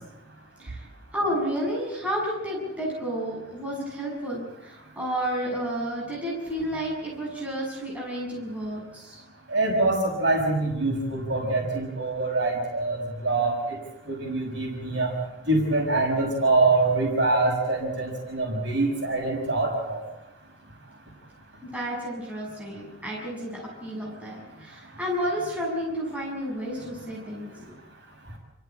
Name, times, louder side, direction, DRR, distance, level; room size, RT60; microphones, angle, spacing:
voice 1, 1.1-9.2 21.6-27.7, equal, 5° right, -4 dB, 6.9 m, -31 dB
voice 2, 9.5-13.8 14.1-15.1 15.5-20.0, right 2 dB, 65° right, 1 dB, 6.3 m, -24 dB
28.5 x 16.0 x 9.1 m, 0.96 s
head